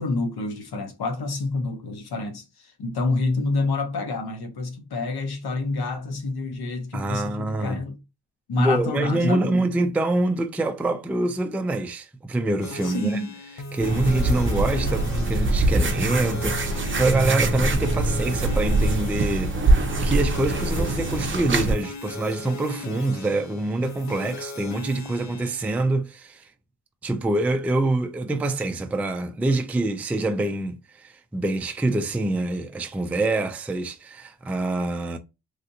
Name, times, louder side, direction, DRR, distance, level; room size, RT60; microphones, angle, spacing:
voice 1, 0.0-8.0 8.5-9.6 12.8-13.3, left 3 dB, 75° left, 1.0 m, -28 dB
voice 2, 6.9-7.8 8.6-13.2 13.7-26.5 27.0-35.2, right 2 dB, 5° right, 0.3 m, -25 dB
sound 1, 12.6-25.8, left 3 dB, 50° left, 0.6 m, -38 dB
sound 2, 13.8-21.7, right 2 dB, 30° right, 0.7 m, -23 dB
3.3 x 2.6 x 2.6 m
cardioid pair, 95°, 38 cm